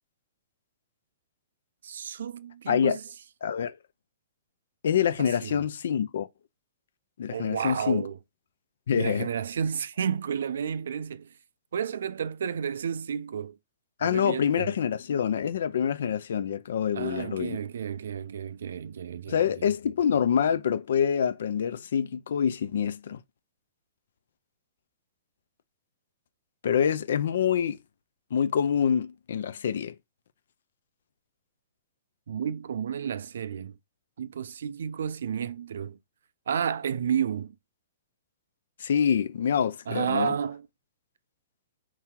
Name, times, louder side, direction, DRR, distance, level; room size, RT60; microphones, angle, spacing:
voice 1, 1.8-3.0 5.2-5.6 7.3-8.2 8.9-11.3 11.7-13.6 14.0-14.7 16.9-19.7 32.3-33.8 34.2-36.0 36.5-37.5 39.9-40.7, right 8 dB, 70° right, 0.3 m, -31 dB
voice 2, 2.7-3.0 3.4-3.8 4.8-6.3 7.2-8.1 8.9-9.3 14.0-17.6 19.3-23.2 26.6-27.8 28.3-29.9 38.8-40.4, left 8 dB, 70° left, 0.4 m, -26 dB
4.5 x 2.8 x 3.6 m
hypercardioid pair, 120°, 0 cm